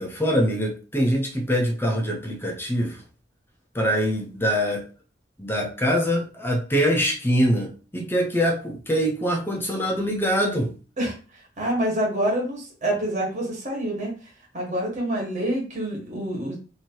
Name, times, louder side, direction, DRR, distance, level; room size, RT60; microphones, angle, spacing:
voice 1, 0.0-3.0 3.7-4.8 5.4-10.7, equal, 10° left, 0 dB, 0.7 m, -24 dB
voice 2, 11.6-14.1 14.5-16.5, right 1 dB, 40° right, -2 dB, 1.5 m, -26 dB
3.1 x 2.8 x 4.4 m, 0.37 s
head